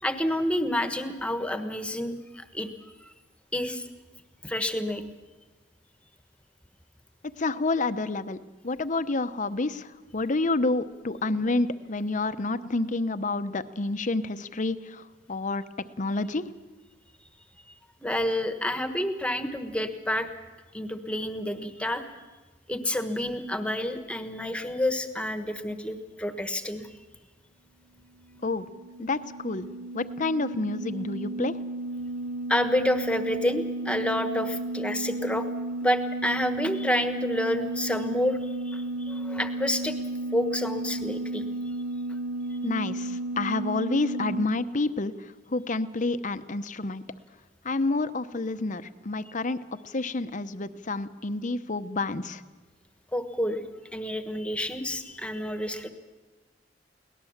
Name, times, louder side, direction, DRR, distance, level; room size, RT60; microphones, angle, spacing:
voice 1, 0.0-2.7 3.0-3.1 3.5-3.8 4.4-5.0 18.0-20.3 20.7-22.1 22.7-26.9 32.5-35.5 35.8-38.4 38.6-39.9 40.3-41.4 53.1-53.6 53.9-55.9, left 1 dB, 5° left, 8 dB, 1.3 m, -29 dB
voice 2, 7.4-8.4 8.6-15.6 16.0-16.5 28.4-28.7 29.0-29.7 29.9-31.6 42.6-47.0 47.6-49.6 49.8-52.4, left 3 dB, 40° left, 11 dB, 0.8 m, -29 dB
sound 1, 28.3-44.5, right 2 dB, 40° right, 0.8 m, -33 dB
23.0 x 18.5 x 7.3 m, 1.3 s
head